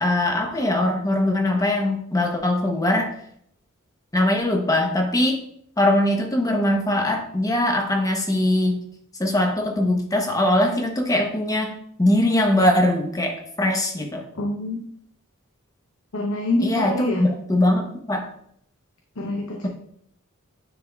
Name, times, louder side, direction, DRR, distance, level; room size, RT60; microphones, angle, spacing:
voice 1, 0.0-3.1 4.1-5.4 5.8-8.8 9.2-14.2 16.6-18.3, left 1 dB, 15° left, 3 dB, 0.8 m, -21 dB
voice 2, 14.3-14.8 16.1-17.3 19.2-19.7, left 2 dB, 80° left, 1 dB, 0.7 m, -26 dB
9.9 x 4.1 x 2.3 m, 0.69 s
head